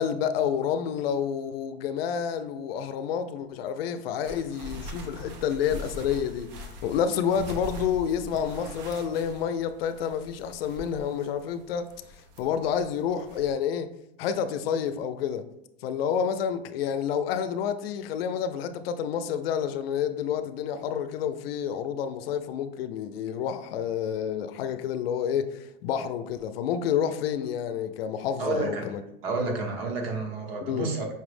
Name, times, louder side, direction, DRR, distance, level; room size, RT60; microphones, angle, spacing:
voice 1, 0.0-11.9 12.4-13.9 14.2-15.4 15.8-29.0 30.7-30.9, left 8 dB, 80° left, 0.5 m, -29 dB
sound 1, 4.2-13.5, left 1 dB, 45° right, 0.6 m, -43 dB
voice 2, 28.4-28.9 29.2-31.1, right 3 dB, 80° right, 1.0 m, -30 dB
5.5 x 2.0 x 3.2 m
supercardioid pair, 170°, 29 cm